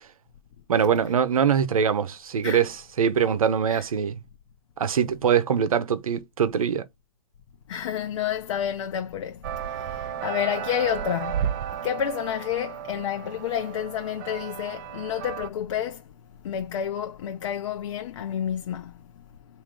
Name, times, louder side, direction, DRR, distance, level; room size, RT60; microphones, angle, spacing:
voice 1, 0.7-4.2 4.8-6.9, right 7 dB, 85° right, 0.8 m, -23 dB
voice 2, 7.7-16.1 16.4-19.0, left 9 dB, 60° left, 0.7 m, -30 dB
sound 1, 9.4-15.5, right 9 dB, 35° right, 0.4 m, -33 dB
3.3 x 2.7 x 3.7 m
hypercardioid pair, 145°, 18 cm